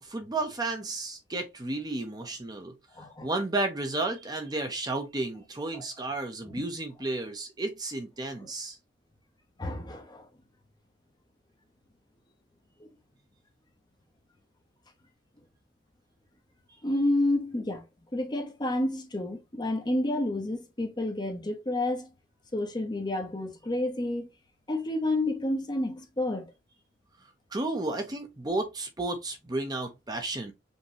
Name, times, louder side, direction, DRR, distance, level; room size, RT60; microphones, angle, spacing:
voice 1, 0.0-2.7 3.2-8.8 27.5-30.5, right 2 dB, 20° right, 0.7 m, -32 dB
voice 2, 2.9-3.3 5.7-5.8 6.5-6.6 8.4-8.5 9.6-10.3 12.8-12.9 16.8-17.8 18.1-22.1 22.5-24.3 24.7-26.5, left 1 dB, 25° left, 0.9 m, -30 dB
5.4 x 2.9 x 2.8 m
head